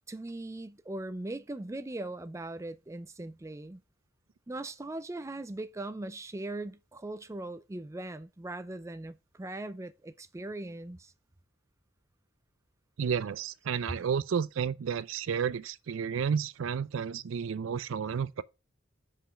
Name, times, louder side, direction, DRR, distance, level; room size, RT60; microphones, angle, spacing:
voice 1, 0.1-3.8 4.5-11.1, right 2 dB, 15° right, 0.4 m, -40 dB
voice 2, 13.0-18.4, right 7 dB, 80° right, 0.4 m, -31 dB
5.6 x 5.0 x 5.7 m
head